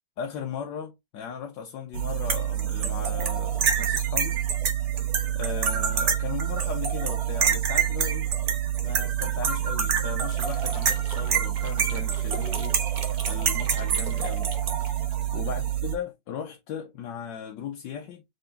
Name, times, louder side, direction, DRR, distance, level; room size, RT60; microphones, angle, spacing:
voice 1, 0.2-4.4 5.3-8.3 8.8-12.8 13.2-14.5 15.3-18.2, left 7 dB, 75° left, 1.4 m, -37 dB
sound 1, 1.9-16.0, right 9 dB, 55° right, 1.5 m, -26 dB
sound 2, 10.3-15.2, right 4 dB, 75° right, 0.4 m, -44 dB
3.8 x 3.4 x 3.2 m
omnidirectional pair, 2.0 m